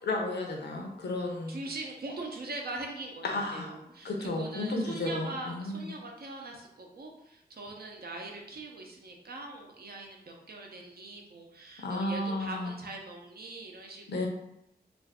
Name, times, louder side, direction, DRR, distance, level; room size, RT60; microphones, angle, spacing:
voice 1, 0.0-1.6 3.2-3.7 4.0-5.9 11.8-12.7 14.1-14.3, left 2 dB, 80° left, 1 dB, 0.6 m, -33 dB
voice 2, 1.5-14.3, right 2 dB, 65° right, 0 dB, 0.6 m, -42 dB
2.5 x 2.4 x 3.4 m, 0.83 s
wide cardioid pair, 85°, 17 cm